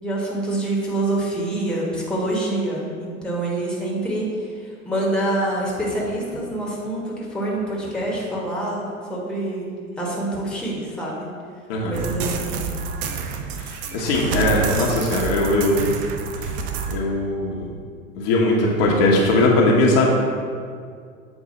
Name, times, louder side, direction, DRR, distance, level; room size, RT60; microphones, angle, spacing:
voice 1, 0.0-9.7 10.0-11.3 11.9-12.7, right 1 dB, ahead, -4 dB, 1.3 m, -26 dB
sound 1, 11.9-17.0, right 6 dB, 25° right, 0.3 m, -28 dB
voice 2, 13.6-15.9 16.5-16.6 16.9-17.6 18.1-20.2, left 2 dB, 45° left, -2 dB, 1.2 m, -19 dB
7.3 x 4.5 x 4.1 m, 2.1 s
figure-of-eight pair, 85°, 40 cm